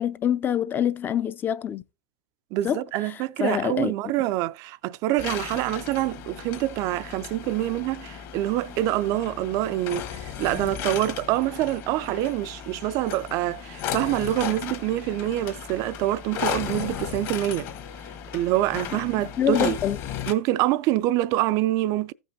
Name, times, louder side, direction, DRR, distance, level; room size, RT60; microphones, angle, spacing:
voice 1, 0.0-1.8 2.6-2.8 3.1-3.9 19.4-20.0, left 9 dB, 25° left, 0.5 m, -25 dB
voice 2, 2.5-17.7 18.3-19.8 20.3-22.1, right 15 dB, 45° right, 0.4 m, -26 dB
sound 1, 5.2-20.3, left 9 dB, 45° left, 1.4 m, -35 dB
15.5 x 5.3 x 2.7 m
hypercardioid pair, 105°, 8 cm